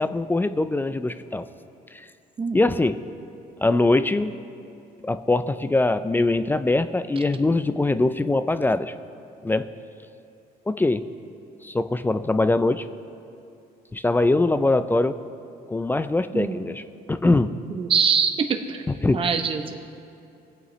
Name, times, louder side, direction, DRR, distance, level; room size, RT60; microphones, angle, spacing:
voice 1, 0.0-1.5 1.9-2.0 2.5-3.0 3.6-4.3 5.0-8.9 9.4-9.7 10.7-11.1 11.6-12.9 13.9-15.2 15.7-16.8 17.1-17.6 19.0-19.3, left 2 dB, 10° left, 12 dB, 0.4 m, -22 dB
voice 2, 17.8-18.8 19.1-19.8, right 6 dB, 30° right, 6 dB, 0.7 m, -23 dB
23.0 x 8.3 x 3.1 m, 2.6 s
cardioid pair, 110°, 17 cm